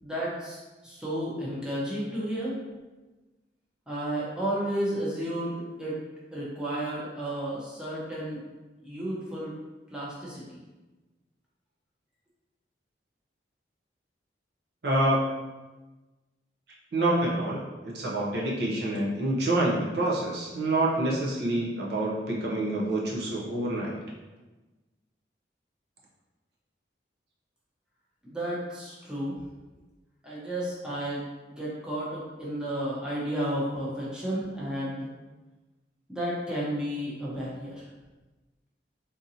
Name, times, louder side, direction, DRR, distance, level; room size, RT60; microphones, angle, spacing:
voice 1, 0.0-2.6 3.9-6.0 6.3-8.4 8.8-9.5 9.9-10.6 28.2-29.4 30.2-35.1 36.1-37.9, right 1 dB, 5° right, -7 dB, 0.7 m, -32 dB
voice 2, 14.8-15.3 16.9-23.9, right 1 dB, 65° right, -4 dB, 0.6 m, -27 dB
3.7 x 2.7 x 2.7 m, 1.2 s
head